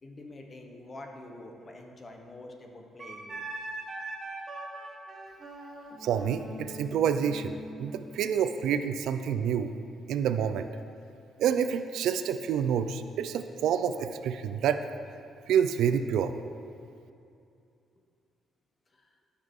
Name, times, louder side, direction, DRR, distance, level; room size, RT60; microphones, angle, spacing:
voice 1, 0.0-3.4 5.9-6.0 18.9-19.1, left 2 dB, 25° left, 3 dB, 0.8 m, -46 dB
Wind instrument woodwind instrument, 3.0-8.4, right 1 dB, 35° right, 1.1 m, -41 dB
voice 2, 6.0-9.7 10.1-10.7 11.4-14.8 15.5-16.3, right 8 dB, 80° right, 10 dB, 0.4 m, -28 dB
12.5 x 5.7 x 3.7 m, 2.5 s
cardioid pair, 150°, 0 cm